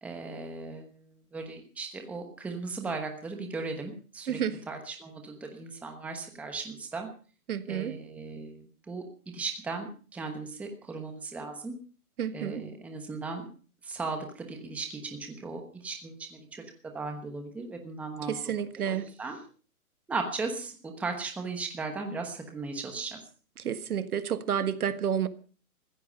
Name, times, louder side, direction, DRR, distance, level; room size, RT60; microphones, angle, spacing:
voice 1, 0.0-4.4 4.7-7.1 7.7-11.8 12.3-13.5 13.8-19.4 20.1-23.2, right 4 dB, 5° right, 4 dB, 1.1 m, -37 dB
voice 2, 7.5-7.9 12.2-12.6 18.3-19.1 23.6-25.3, right 8 dB, 70° right, 13 dB, 1.6 m, -30 dB
15.0 x 14.5 x 5.4 m, 0.40 s
hypercardioid pair, 160°, 45 cm